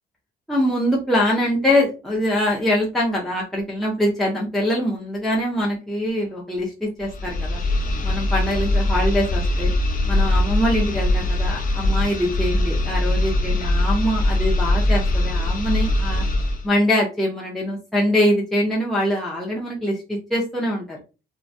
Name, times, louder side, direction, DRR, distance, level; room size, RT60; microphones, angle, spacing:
voice 1, 0.5-7.6 8.0-9.7 10.0-16.2 16.6-21.0, left 1 dB, ahead, -4 dB, 0.6 m, -23 dB
sound 1, 7.0-16.7, left 1 dB, 45° left, 0.5 m, -21 dB
2.3 x 2.2 x 2.6 m, 0.31 s
cardioid pair, 90°, 20 cm